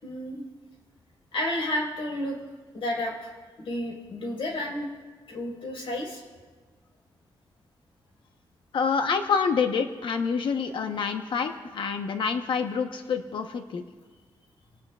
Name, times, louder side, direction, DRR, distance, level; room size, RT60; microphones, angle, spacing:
voice 1, 0.0-0.4 1.3-2.4 2.7-3.3 3.6-4.9 5.3-6.2, left 1 dB, 85° left, -1 dB, 4.9 m, -31 dB
voice 2, 8.7-13.8, left 5 dB, 65° left, 6 dB, 1.1 m, -27 dB
28.0 x 18.5 x 2.4 m, 1.4 s
wide cardioid pair, 145°, 9 cm